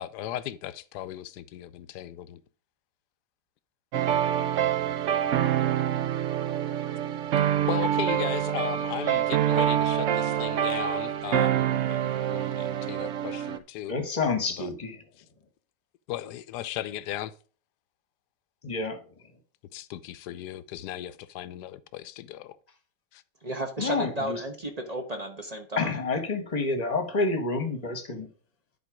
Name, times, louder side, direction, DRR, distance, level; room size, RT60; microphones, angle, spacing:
voice 1, 0.0-2.4 7.7-13.9 14.5-14.7 16.1-17.3 19.7-22.6 23.1-23.2, left 12 dB, 75° left, 1.1 m, -36 dB
sound 1, 3.9-13.6, right 10 dB, 70° right, 0.7 m, -26 dB
voice 2, 13.9-15.0 18.6-19.0 23.8-24.4 25.8-28.3, left 3 dB, 25° left, 1.2 m, -28 dB
voice 3, 23.4-25.9, right 1 dB, 30° right, 0.8 m, -33 dB
10.5 x 4.6 x 4.9 m
omnidirectional pair, 2.0 m